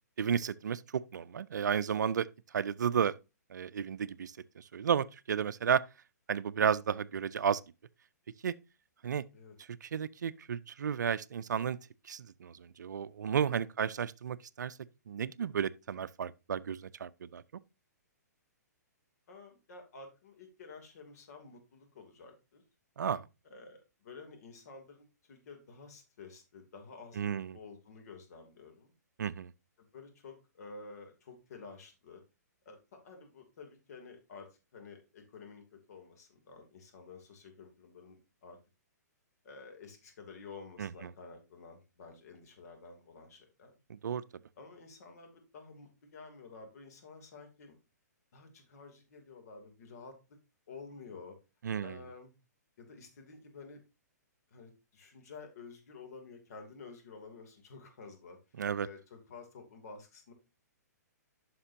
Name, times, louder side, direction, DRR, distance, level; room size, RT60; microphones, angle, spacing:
voice 1, 0.2-2.3 2.5-3.1 3.5-5.8 6.3-7.6 8.4-8.5 9.0-9.2 9.8-11.8 12.1-14.8 15.1-17.4 23.0-23.2 27.2-27.6 29.2-29.5 40.8-40.9 43.9-44.2 51.6-52.0 58.6-58.9, right 7 dB, 80° right, 0.4 m, -33 dB
voice 2, 19.3-22.6 23.4-28.9 29.8-32.2 32.6-32.8 33.0-38.6 39.4-43.7 44.6-47.8 48.3-50.2 50.7-51.4 51.8-52.3 52.8-53.8 54.5-60.3, left 4 dB, 60° left, 2.7 m, -51 dB
9.8 x 5.9 x 2.7 m
hypercardioid pair, 135°, 10 cm